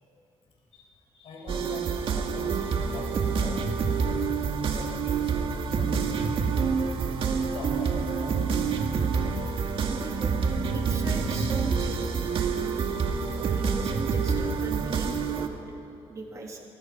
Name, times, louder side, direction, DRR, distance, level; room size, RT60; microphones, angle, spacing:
voice 1, 0.7-2.6 2.9-3.6 4.6-6.5 7.5-8.9 11.3-11.4 11.7-11.8, left 4 dB, 65° left, -1 dB, 6.6 m, -44 dB
sound 1, 1.5-15.5, right 5 dB, 55° right, 2.1 m, -27 dB
voice 2, 9.9-10.3 10.7-12.9 13.3-15.5 16.1-16.6, right 3 dB, 30° right, 0 dB, 3.2 m, -39 dB
28.0 x 23.5 x 6.0 m, 2.7 s
cardioid pair, 150°, 11 cm